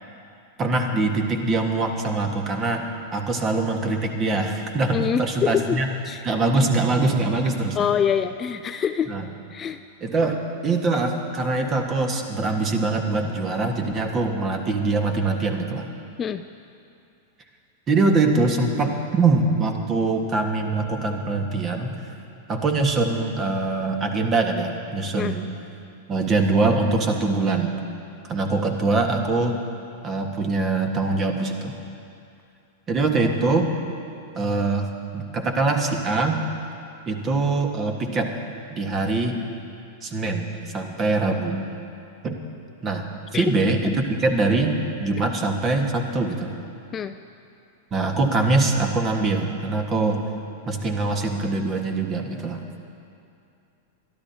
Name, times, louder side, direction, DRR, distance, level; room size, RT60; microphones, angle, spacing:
voice 1, 0.6-2.8 3.1-5.9 6.2-7.9 9.1-9.2 10.0-15.9 17.9-21.9 22.5-25.4 26.1-27.7 28.2-29.6 30.0-31.7 32.9-33.7 34.3-34.9 35.1-36.4 37.1-38.3 38.7-39.4 40.0-40.5 40.7-41.7 42.2-42.3 42.8-43.0 43.3-46.6 47.9-50.2 50.7-52.6, right 3 dB, 30° right, 4 dB, 1.6 m, -23 dB
voice 2, 4.9-5.8 6.0-6.2 7.7-9.1 9.5-9.8 16.2-16.4 25.1-25.4 43.3-43.5 46.9-47.2, left 8 dB, 25° left, 10 dB, 0.4 m, -25 dB
23.5 x 12.5 x 2.9 m, 2.6 s
figure-of-eight pair, 95°, 0 cm